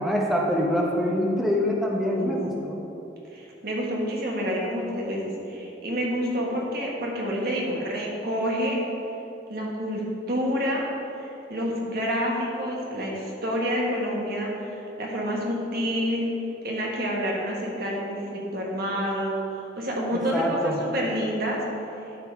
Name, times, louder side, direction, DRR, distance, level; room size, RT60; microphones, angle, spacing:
voice 1, 0.0-2.8 20.1-20.8, equal, ahead, -2 dB, 0.9 m, -25 dB
voice 2, 2.0-2.3 3.3-8.8 9.5-10.0 10.3-10.9 11.2-16.3 16.6-20.6 20.9-21.6, equal, 55° right, -3 dB, 1.6 m, -28 dB
12.0 x 4.0 x 4.8 m, 2.9 s
head